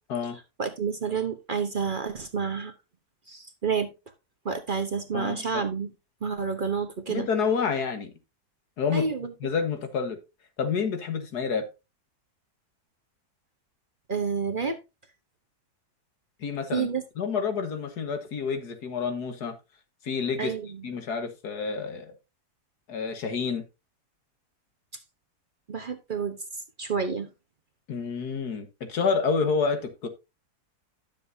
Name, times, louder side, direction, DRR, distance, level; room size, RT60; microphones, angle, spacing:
voice 1, 0.6-2.7 3.3-3.9 4.4-5.9 6.2-7.3 8.9-9.3 14.1-14.8 16.7-17.0 20.4-20.9 25.7-26.4 26.8-27.3, right 5 dB, 40° right, 0.9 m, -29 dB
voice 2, 5.1-5.6 7.1-8.1 8.8-9.1 9.4-10.2 10.6-11.7 16.4-16.9 17.2-19.6 20.0-20.5 20.8-22.1 22.9-23.6 27.9-30.1, left 5 dB, 90° left, 2.0 m, -28 dB
11.5 x 7.2 x 2.6 m
omnidirectional pair, 1.7 m